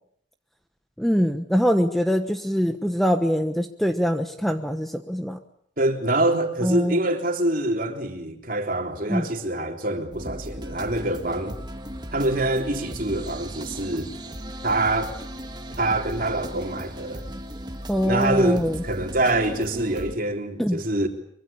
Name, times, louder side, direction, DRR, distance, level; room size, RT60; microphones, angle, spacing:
voice 1, 1.0-5.4 6.6-7.0 9.1-9.3 17.9-18.8 20.6-20.8, equal, ahead, 1.1 m, -23 dB
voice 2, 5.8-11.6 12.1-14.1 14.6-15.1 15.8-17.2 18.1-21.1, right 1 dB, 45° right, 3.5 m, -25 dB
sound 1, 10.1-20.1, equal, 20° right, 2.2 m, -37 dB
24.5 x 24.0 x 8.7 m
head